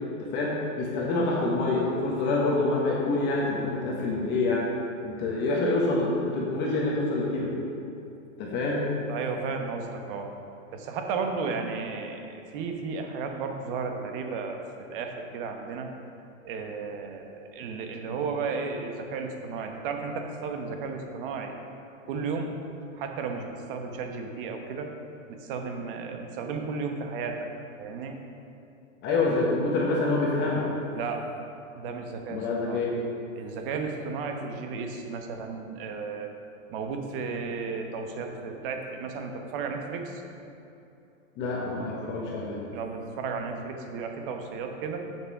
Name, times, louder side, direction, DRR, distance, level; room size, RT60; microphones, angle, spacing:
voice 1, 0.2-4.7 5.0-7.5 8.4-8.9 29.0-30.7 32.3-32.9 41.4-42.6, left 2 dB, 25° left, -3 dB, 1.2 m, -26 dB
voice 2, 9.1-10.3 10.7-15.9 16.4-21.5 22.1-22.5 22.9-24.9 25.3-27.5 27.8-28.2 29.1-29.2 30.9-31.3 31.7-32.8 33.3-36.3 36.7-40.2 42.7-45.1, right 5 dB, 40° right, 4 dB, 1.1 m, -34 dB
7.5 x 6.6 x 5.5 m, 2.8 s
hypercardioid pair, 140°, 41 cm